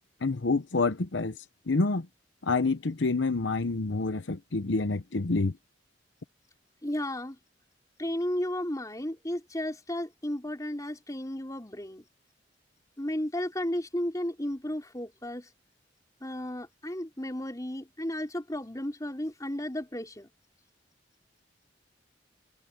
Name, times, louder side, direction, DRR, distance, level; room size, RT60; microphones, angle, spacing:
voice 1, 0.2-1.3 1.7-2.1 2.4-5.5, left 3 dB, 75° left, 0.9 m, -27 dB
voice 2, 6.8-7.4 8.0-12.1 13.0-15.5 16.2-20.3, left 1 dB, 20° left, 4.1 m, -33 dB
head